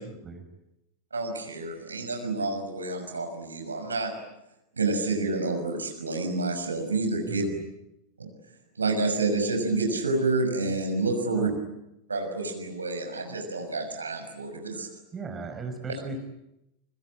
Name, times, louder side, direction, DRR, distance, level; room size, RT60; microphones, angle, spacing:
voice 1, 0.0-0.5 7.3-7.7 11.3-11.6 15.1-16.2, right 4 dB, 20° right, 6 dB, 5.0 m, -38 dB
voice 2, 1.1-4.1 4.8-7.4 8.2-8.3 8.8-11.5 12.1-14.9, right 3 dB, 75° right, 5 dB, 6.2 m, -28 dB
27.0 x 25.5 x 8.7 m, 0.88 s
figure-of-eight pair, 90°, 0 cm